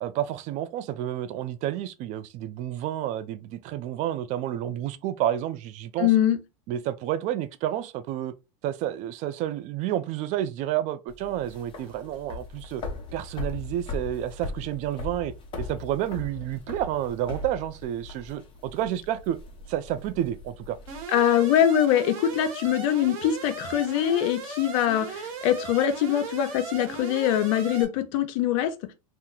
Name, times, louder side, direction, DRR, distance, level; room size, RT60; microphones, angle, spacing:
voice 1, 0.0-6.1 6.7-8.3 8.6-12.8 13.1-19.4 19.7-20.8, right 12 dB, 40° right, 0.4 m, -30 dB
voice 2, 6.0-6.4 21.1-28.9, left 11 dB, 60° left, 0.7 m, -23 dB
sound 1, 11.1-21.0, left 3 dB, 30° left, 0.9 m, -39 dB
Alarm, 20.9-27.9, right 5 dB, 65° right, 1.0 m, -37 dB
2.9 x 2.1 x 3.8 m
supercardioid pair, 130°, 19 cm